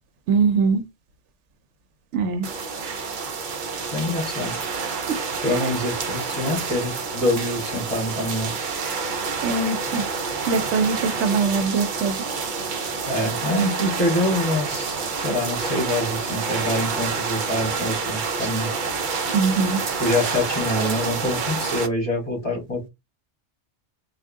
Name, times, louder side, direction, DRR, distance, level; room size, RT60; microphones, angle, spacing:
voice 1, 0.3-0.8 2.1-2.5 4.7-4.9 5.5-5.6 9.4-10.0 10.5-12.1 19.3-19.8, right 4 dB, 80° right, 0.9 m, -22 dB
sound 1, 2.4-21.9, right 4 dB, 50° right, 0.7 m, -28 dB
voice 2, 3.9-4.6 5.4-8.5 13.1-18.7 20.0-22.9, left 1 dB, 30° left, 1.8 m, -25 dB
3.6 x 2.4 x 3.5 m
omnidirectional pair, 1.2 m